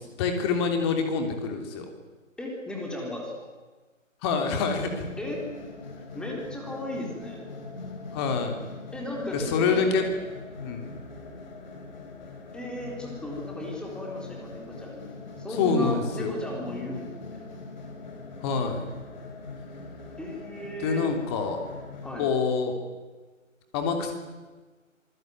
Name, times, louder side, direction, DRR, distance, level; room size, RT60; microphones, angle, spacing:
voice 1, 0.2-1.9 4.2-5.1 8.1-8.5 9.3-10.0 10.6-10.9 15.6-16.4 18.4-18.9 20.8-21.6 22.2-22.8 23.7-24.1, left 5 dB, 20° left, 5 dB, 3.2 m, -26 dB
voice 2, 2.4-3.3 5.2-5.4 6.1-7.4 8.9-9.8 12.5-15.1 15.4-17.4 20.2-21.0 22.0-22.2, left 1 dB, ahead, -1 dB, 3.9 m, -35 dB
sound 1, 4.4-22.2, left 3 dB, 35° left, 5.2 m, -42 dB
27.0 x 19.5 x 9.4 m, 1.3 s
figure-of-eight pair, 150°, 39 cm